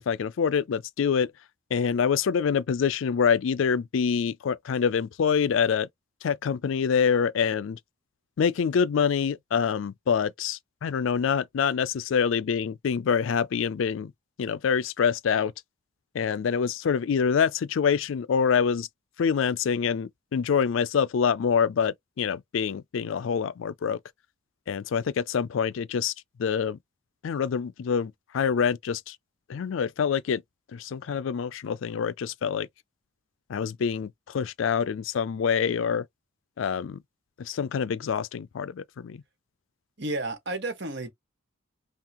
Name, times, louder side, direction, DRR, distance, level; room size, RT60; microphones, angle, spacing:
voice 1, 0.1-1.3 1.7-5.9 6.2-7.8 8.4-14.1 14.4-15.5 16.1-18.9 19.2-24.0 24.7-26.1 26.4-26.8 27.2-29.2 29.5-30.4 30.7-32.7 33.5-36.1 36.6-37.0 37.4-39.2, left 6 dB, 70° left, 0.4 m, -26 dB
voice 2, 40.0-41.1, right 2 dB, 55° right, 1.4 m, -31 dB
5.5 x 2.4 x 2.9 m
head